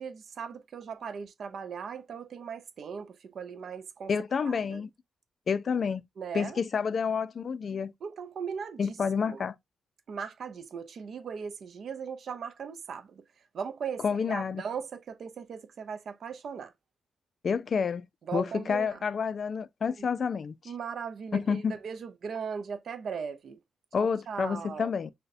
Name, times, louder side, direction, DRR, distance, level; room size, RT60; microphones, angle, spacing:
voice 1, 0.0-4.1 4.5-4.8 6.2-6.6 8.0-8.9 9.2-9.4 10.1-13.2 13.5-16.7 18.3-19.0 19.9-20.1 20.6-23.6 24.0-24.9, right 6 dB, 60° right, 0.4 m, -38 dB
voice 2, 4.1-4.9 5.5-6.0 6.3-7.9 8.8-9.5 14.0-14.6 17.4-18.1 18.3-20.5 21.3-21.8 23.9-25.1, left 6 dB, 45° left, 0.3 m, -29 dB
6.3 x 2.1 x 2.6 m
cardioid pair, 120°, 0 cm